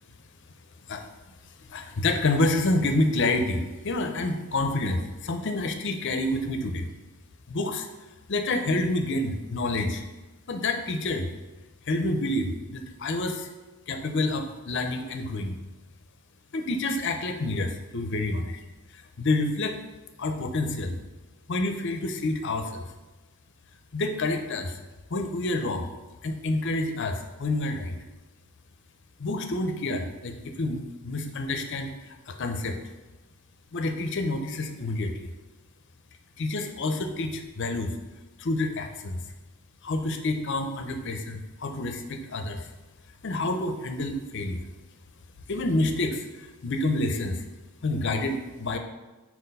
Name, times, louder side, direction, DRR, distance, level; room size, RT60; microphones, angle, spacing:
voice 1, 1.7-6.9 7.5-7.9 8.3-10.0 10.5-11.3 11.9-13.5 13.9-15.6 16.5-18.6 18.9-19.8 20.2-21.0 21.5-22.9 23.9-24.8 25.1-25.8 26.2-28.0 29.2-31.9 32.3-32.8 33.7-35.3 36.4-37.9 38.4-39.2 39.8-42.7 43.2-44.6 45.5-47.4 47.8-48.8, left 2 dB, 55° left, 6 dB, 0.6 m, -28 dB
4.6 x 4.3 x 5.3 m, 1.1 s
head